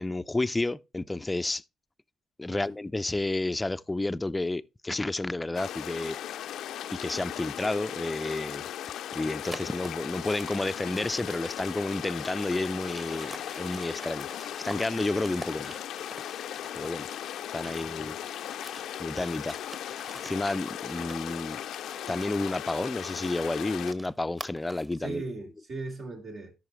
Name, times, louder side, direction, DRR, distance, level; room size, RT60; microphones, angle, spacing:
voice 1, 0.0-1.6 2.4-6.2 7.0-15.7 16.2-16.4 16.7-17.1 17.5-18.2 19.0-19.6 20.2-21.6 22.1-25.2, left 2 dB, 15° left, 0.4 m, -31 dB
sound 1, 5.5-23.9, left 11 dB, 80° left, 0.4 m, -37 dB
sound 2, 9.4-17.9 18.2-25.0, right 1 dB, 15° right, 1.2 m, -46 dB
voice 2, 17.7-18.0 25.0-26.5, right 3 dB, 65° right, 3.4 m, -39 dB
13.0 x 5.4 x 3.1 m
cardioid pair, 70°, 0 cm